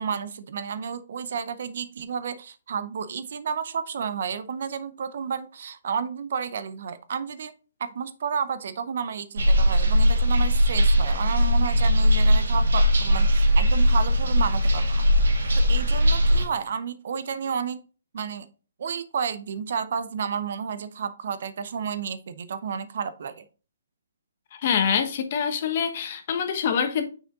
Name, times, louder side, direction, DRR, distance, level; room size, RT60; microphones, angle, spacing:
voice 1, 0.0-7.5 7.8-15.0 15.6-17.8 18.1-18.5 18.8-23.4, right 6 dB, 55° right, 0.7 m, -31 dB
sound 1, 9.4-16.4, equal, 75° right, 2.1 m, -20 dB
voice 2, 24.6-27.1, left 7 dB, 40° left, 1.0 m, -25 dB
6.5 x 5.0 x 3.7 m
hypercardioid pair, 160°, 0 cm